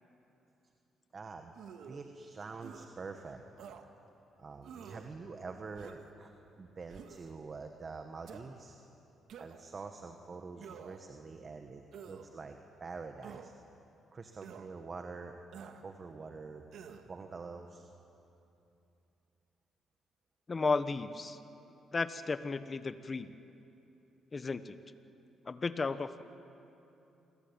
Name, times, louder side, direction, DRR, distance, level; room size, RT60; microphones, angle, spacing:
voice 1, 1.1-1.5 1.8-3.4 4.4-8.8 9.4-13.5 14.1-15.4 15.8-16.7 17.1-17.9, right 4 dB, 40° right, 5 dB, 1.7 m, -46 dB
sound 1, 1.5-2.0 2.6-2.9 3.6-3.8 4.6-5.1 5.8-6.1 6.9-7.3 8.3-8.4 9.3-9.7 10.6-11.1 11.9-12.3 13.2-13.5 14.4-14.7 15.5-15.8 16.7-17.1, right 7 dB, 75° right, 1.9 m, -49 dB
voice 2, 20.5-21.4 21.9-23.3 24.3-24.7 25.5-26.2, left 4 dB, 30° left, 11 dB, 1.2 m, -34 dB
28.0 x 21.5 x 9.0 m, 2.9 s
cardioid pair, 90°, 0 cm